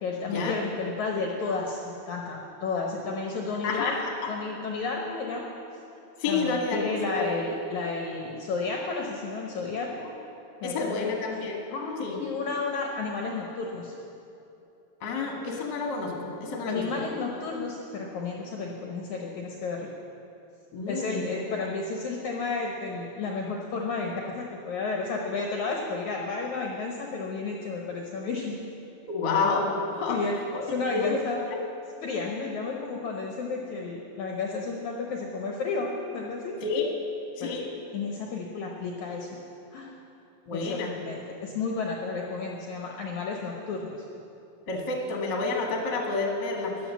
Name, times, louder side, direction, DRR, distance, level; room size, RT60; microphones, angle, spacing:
voice 1, 0.0-3.9 4.3-5.5 6.3-10.2 10.6-11.2 11.7-13.9 16.7-19.9 20.9-28.6 30.1-30.4 30.6-31.4 32.0-36.6 37.4-37.6 37.9-39.3 39.7-39.9 40.5-44.1, left 4 dB, 65° left, 0 dB, 2.0 m, -32 dB
voice 2, 3.6-4.3 6.2-7.3 10.6-11.6 12.0-12.2 15.0-16.8 20.7-21.3 29.1-30.2 30.5-31.2 31.5-31.6 36.6-36.9 37.4-37.7 40.5-40.9 44.7-46.9, left 4 dB, 40° left, 0 dB, 1.8 m, -29 dB
13.0 x 10.5 x 7.3 m, 2.8 s
omnidirectional pair, 4.3 m